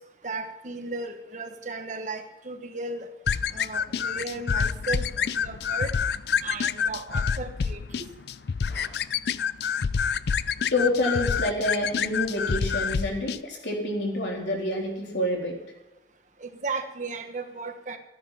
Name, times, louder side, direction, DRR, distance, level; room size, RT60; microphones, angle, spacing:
voice 1, 0.2-3.1 3.5-5.9 6.4-8.1 16.4-18.0, right 3 dB, 45° right, 7 dB, 1.3 m, -35 dB
sound 1, 3.3-13.4, left 6 dB, 65° left, 0.4 m, -27 dB
voice 2, 10.7-15.6, left 1 dB, 90° left, -1 dB, 3.8 m, -28 dB
14.0 x 10.5 x 5.7 m, 1.0 s
head